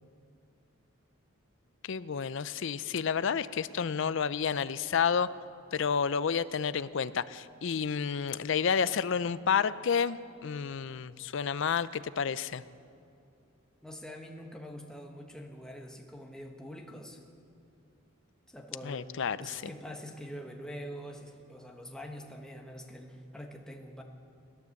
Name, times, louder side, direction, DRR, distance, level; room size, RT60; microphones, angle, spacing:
voice 1, 1.8-5.3 5.7-12.6 18.8-19.6, left 6 dB, 60° left, 16 dB, 0.5 m, -30 dB
voice 2, 13.8-17.2 18.5-24.0, equal, 5° left, 1 dB, 1.2 m, -45 dB
16.5 x 12.5 x 7.1 m, 2.4 s
head